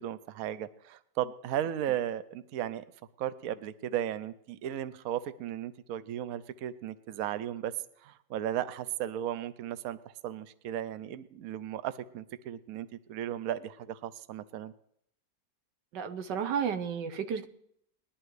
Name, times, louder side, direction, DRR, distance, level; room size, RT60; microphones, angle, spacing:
voice 1, 0.0-2.8 3.2-7.7 8.0-10.0 10.2-14.7, right 11 dB, 65° right, 14 dB, 1.0 m, -35 dB
voice 2, 15.9-17.5, right 7 dB, 85° right, 9 dB, 1.6 m, -32 dB
20.5 x 11.5 x 3.2 m, 0.71 s
omnidirectional pair, 1.8 m